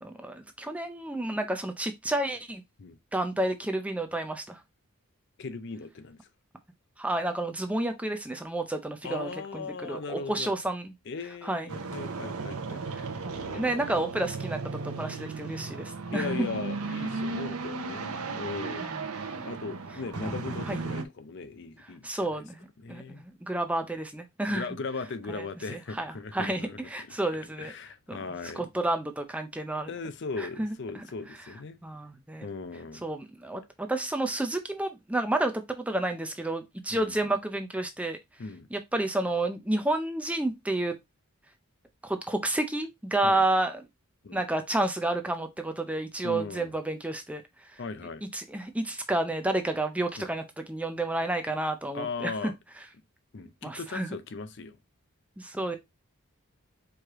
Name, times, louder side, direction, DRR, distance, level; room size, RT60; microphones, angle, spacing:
voice 1, 0.0-2.6 3.1-4.6 7.0-10.9 11.4-11.7 13.2-14.6 14.8-16.3 18.8-19.0 20.2-20.3 20.7-20.8 22.0-24.7 25.3-25.4 25.7-27.7 28.1-28.2 28.6-29.9 30.4-31.0 31.8-32.5 33.0-38.2 38.7-41.0 42.0-43.8 44.3-47.4 47.7-47.8 48.3-52.5 53.6-54.1 55.4-55.8, right 1 dB, 5° right, 0.4 m, -30 dB
voice 2, 5.4-6.2 9.0-10.6 11.1-12.8 13.4-14.1 16.1-18.9 19.4-22.4 22.8-23.2 24.5-26.8 27.6-28.7 29.9-31.8 32.4-33.0 36.9-37.3 38.4-38.7 43.2-43.4 44.2-44.4 46.2-46.7 47.8-48.2 50.2-50.3 51.9-52.5 53.3-54.8, left 4 dB, 50° left, 0.5 m, -38 dB
sound 1, 11.7-21.0, right 4 dB, 85° right, 0.8 m, -35 dB
4.7 x 3.2 x 3.6 m
head